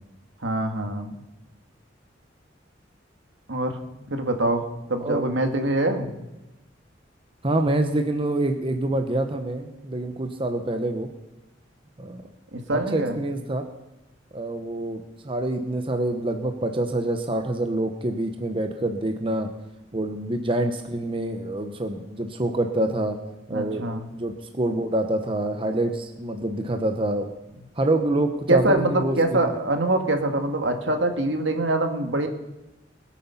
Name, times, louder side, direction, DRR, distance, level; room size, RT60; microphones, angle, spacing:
voice 1, 0.4-1.1 3.5-3.8 4.1-6.1 12.5-13.2 23.5-24.1 28.5-32.3, right 2 dB, 75° right, 5 dB, 1.7 m, -24 dB
voice 2, 7.4-11.1 12.0-12.3 12.7-13.6 14.3-19.5 19.9-23.2 23.5-23.9 24.1-27.3 27.8-29.2, right 1 dB, 30° right, 6 dB, 0.9 m, -26 dB
21.0 x 8.5 x 5.7 m, 0.99 s
head